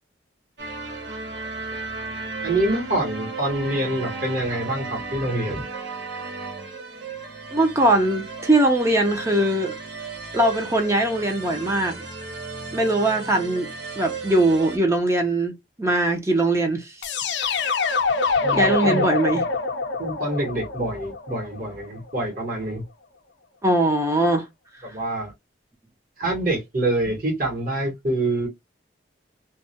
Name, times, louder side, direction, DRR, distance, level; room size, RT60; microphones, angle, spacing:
sound 1, 0.6-14.8, right 4 dB, 65° right, 0.7 m, -34 dB
voice 1, 2.4-5.6 18.4-19.1 20.0-22.8 24.8-25.3 26.2-28.5, right 1 dB, 50° right, 1.0 m, -26 dB
voice 2, 7.5-9.7 10.3-12.0 12.7-13.7 14.0-17.1 17.4-17.8 18.5-19.4 23.6-24.5, right 1 dB, 15° right, 0.4 m, -21 dB
sound 2, 17.0-21.9, left 4 dB, 70° left, 0.5 m, -25 dB
2.3 x 2.1 x 2.6 m
head